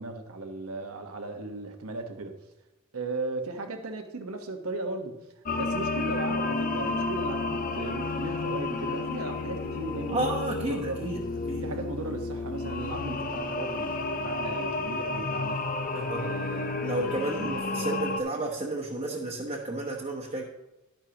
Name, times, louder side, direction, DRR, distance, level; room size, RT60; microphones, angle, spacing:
voice 1, 0.0-2.4 2.9-5.3 5.6-10.2 10.6-11.0 11.6-15.6 16.1-18.0, right 2 dB, 85° right, 5 dB, 1.2 m, -36 dB
sound 1, 5.5-18.2, left 3 dB, 40° left, 0.7 m, -31 dB
voice 2, 10.1-11.2 11.5-11.6 15.9-16.3 16.8-20.4, right 2 dB, 30° right, -2 dB, 1.0 m, -32 dB
11.5 x 10.5 x 2.9 m, 0.95 s
head